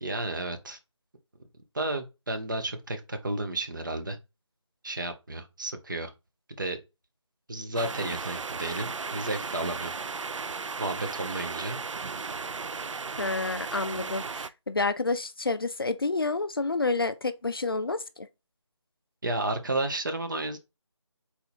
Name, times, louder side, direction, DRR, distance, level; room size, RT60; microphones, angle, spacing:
voice 1, 0.0-0.8 1.7-4.2 4.8-6.1 6.6-6.8 7.5-9.9 10.8-11.8 19.2-20.6, right 2 dB, 40° right, 0.7 m, -32 dB
sound 1, 7.8-14.5, right 4 dB, 80° right, 0.4 m, -35 dB
voice 2, 13.2-18.0, left 3 dB, 50° left, 0.4 m, -29 dB
4.1 x 2.7 x 4.2 m
figure-of-eight pair, 170°, 16 cm